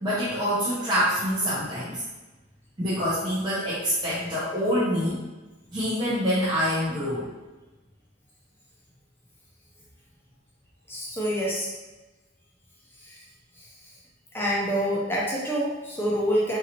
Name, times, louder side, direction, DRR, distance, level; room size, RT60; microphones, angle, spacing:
voice 1, 0.0-2.0 2.8-5.2 5.7-7.3, equal, 20° right, -11 dB, 0.7 m, -26 dB
voice 2, 10.9-11.7 13.0-13.2 13.6-13.7 14.3-16.6, equal, 10° left, -5 dB, 0.5 m, -27 dB
3.8 x 2.7 x 2.9 m, 1.2 s
head